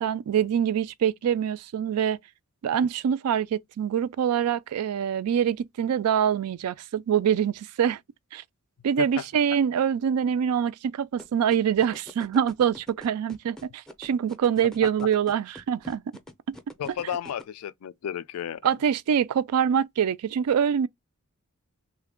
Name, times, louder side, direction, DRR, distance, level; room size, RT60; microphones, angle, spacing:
voice 1, 0.0-2.2 2.6-8.0 8.3-8.4 8.8-16.0 16.5-16.6 18.6-20.9, right 8 dB, 80° right, 0.3 m, -25 dB
sound 1, 11.2-17.4, equal, 5° left, 0.5 m, -44 dB
voice 2, 16.8-18.6, left 9 dB, 75° left, 0.4 m, -33 dB
3.3 x 2.2 x 3.5 m
head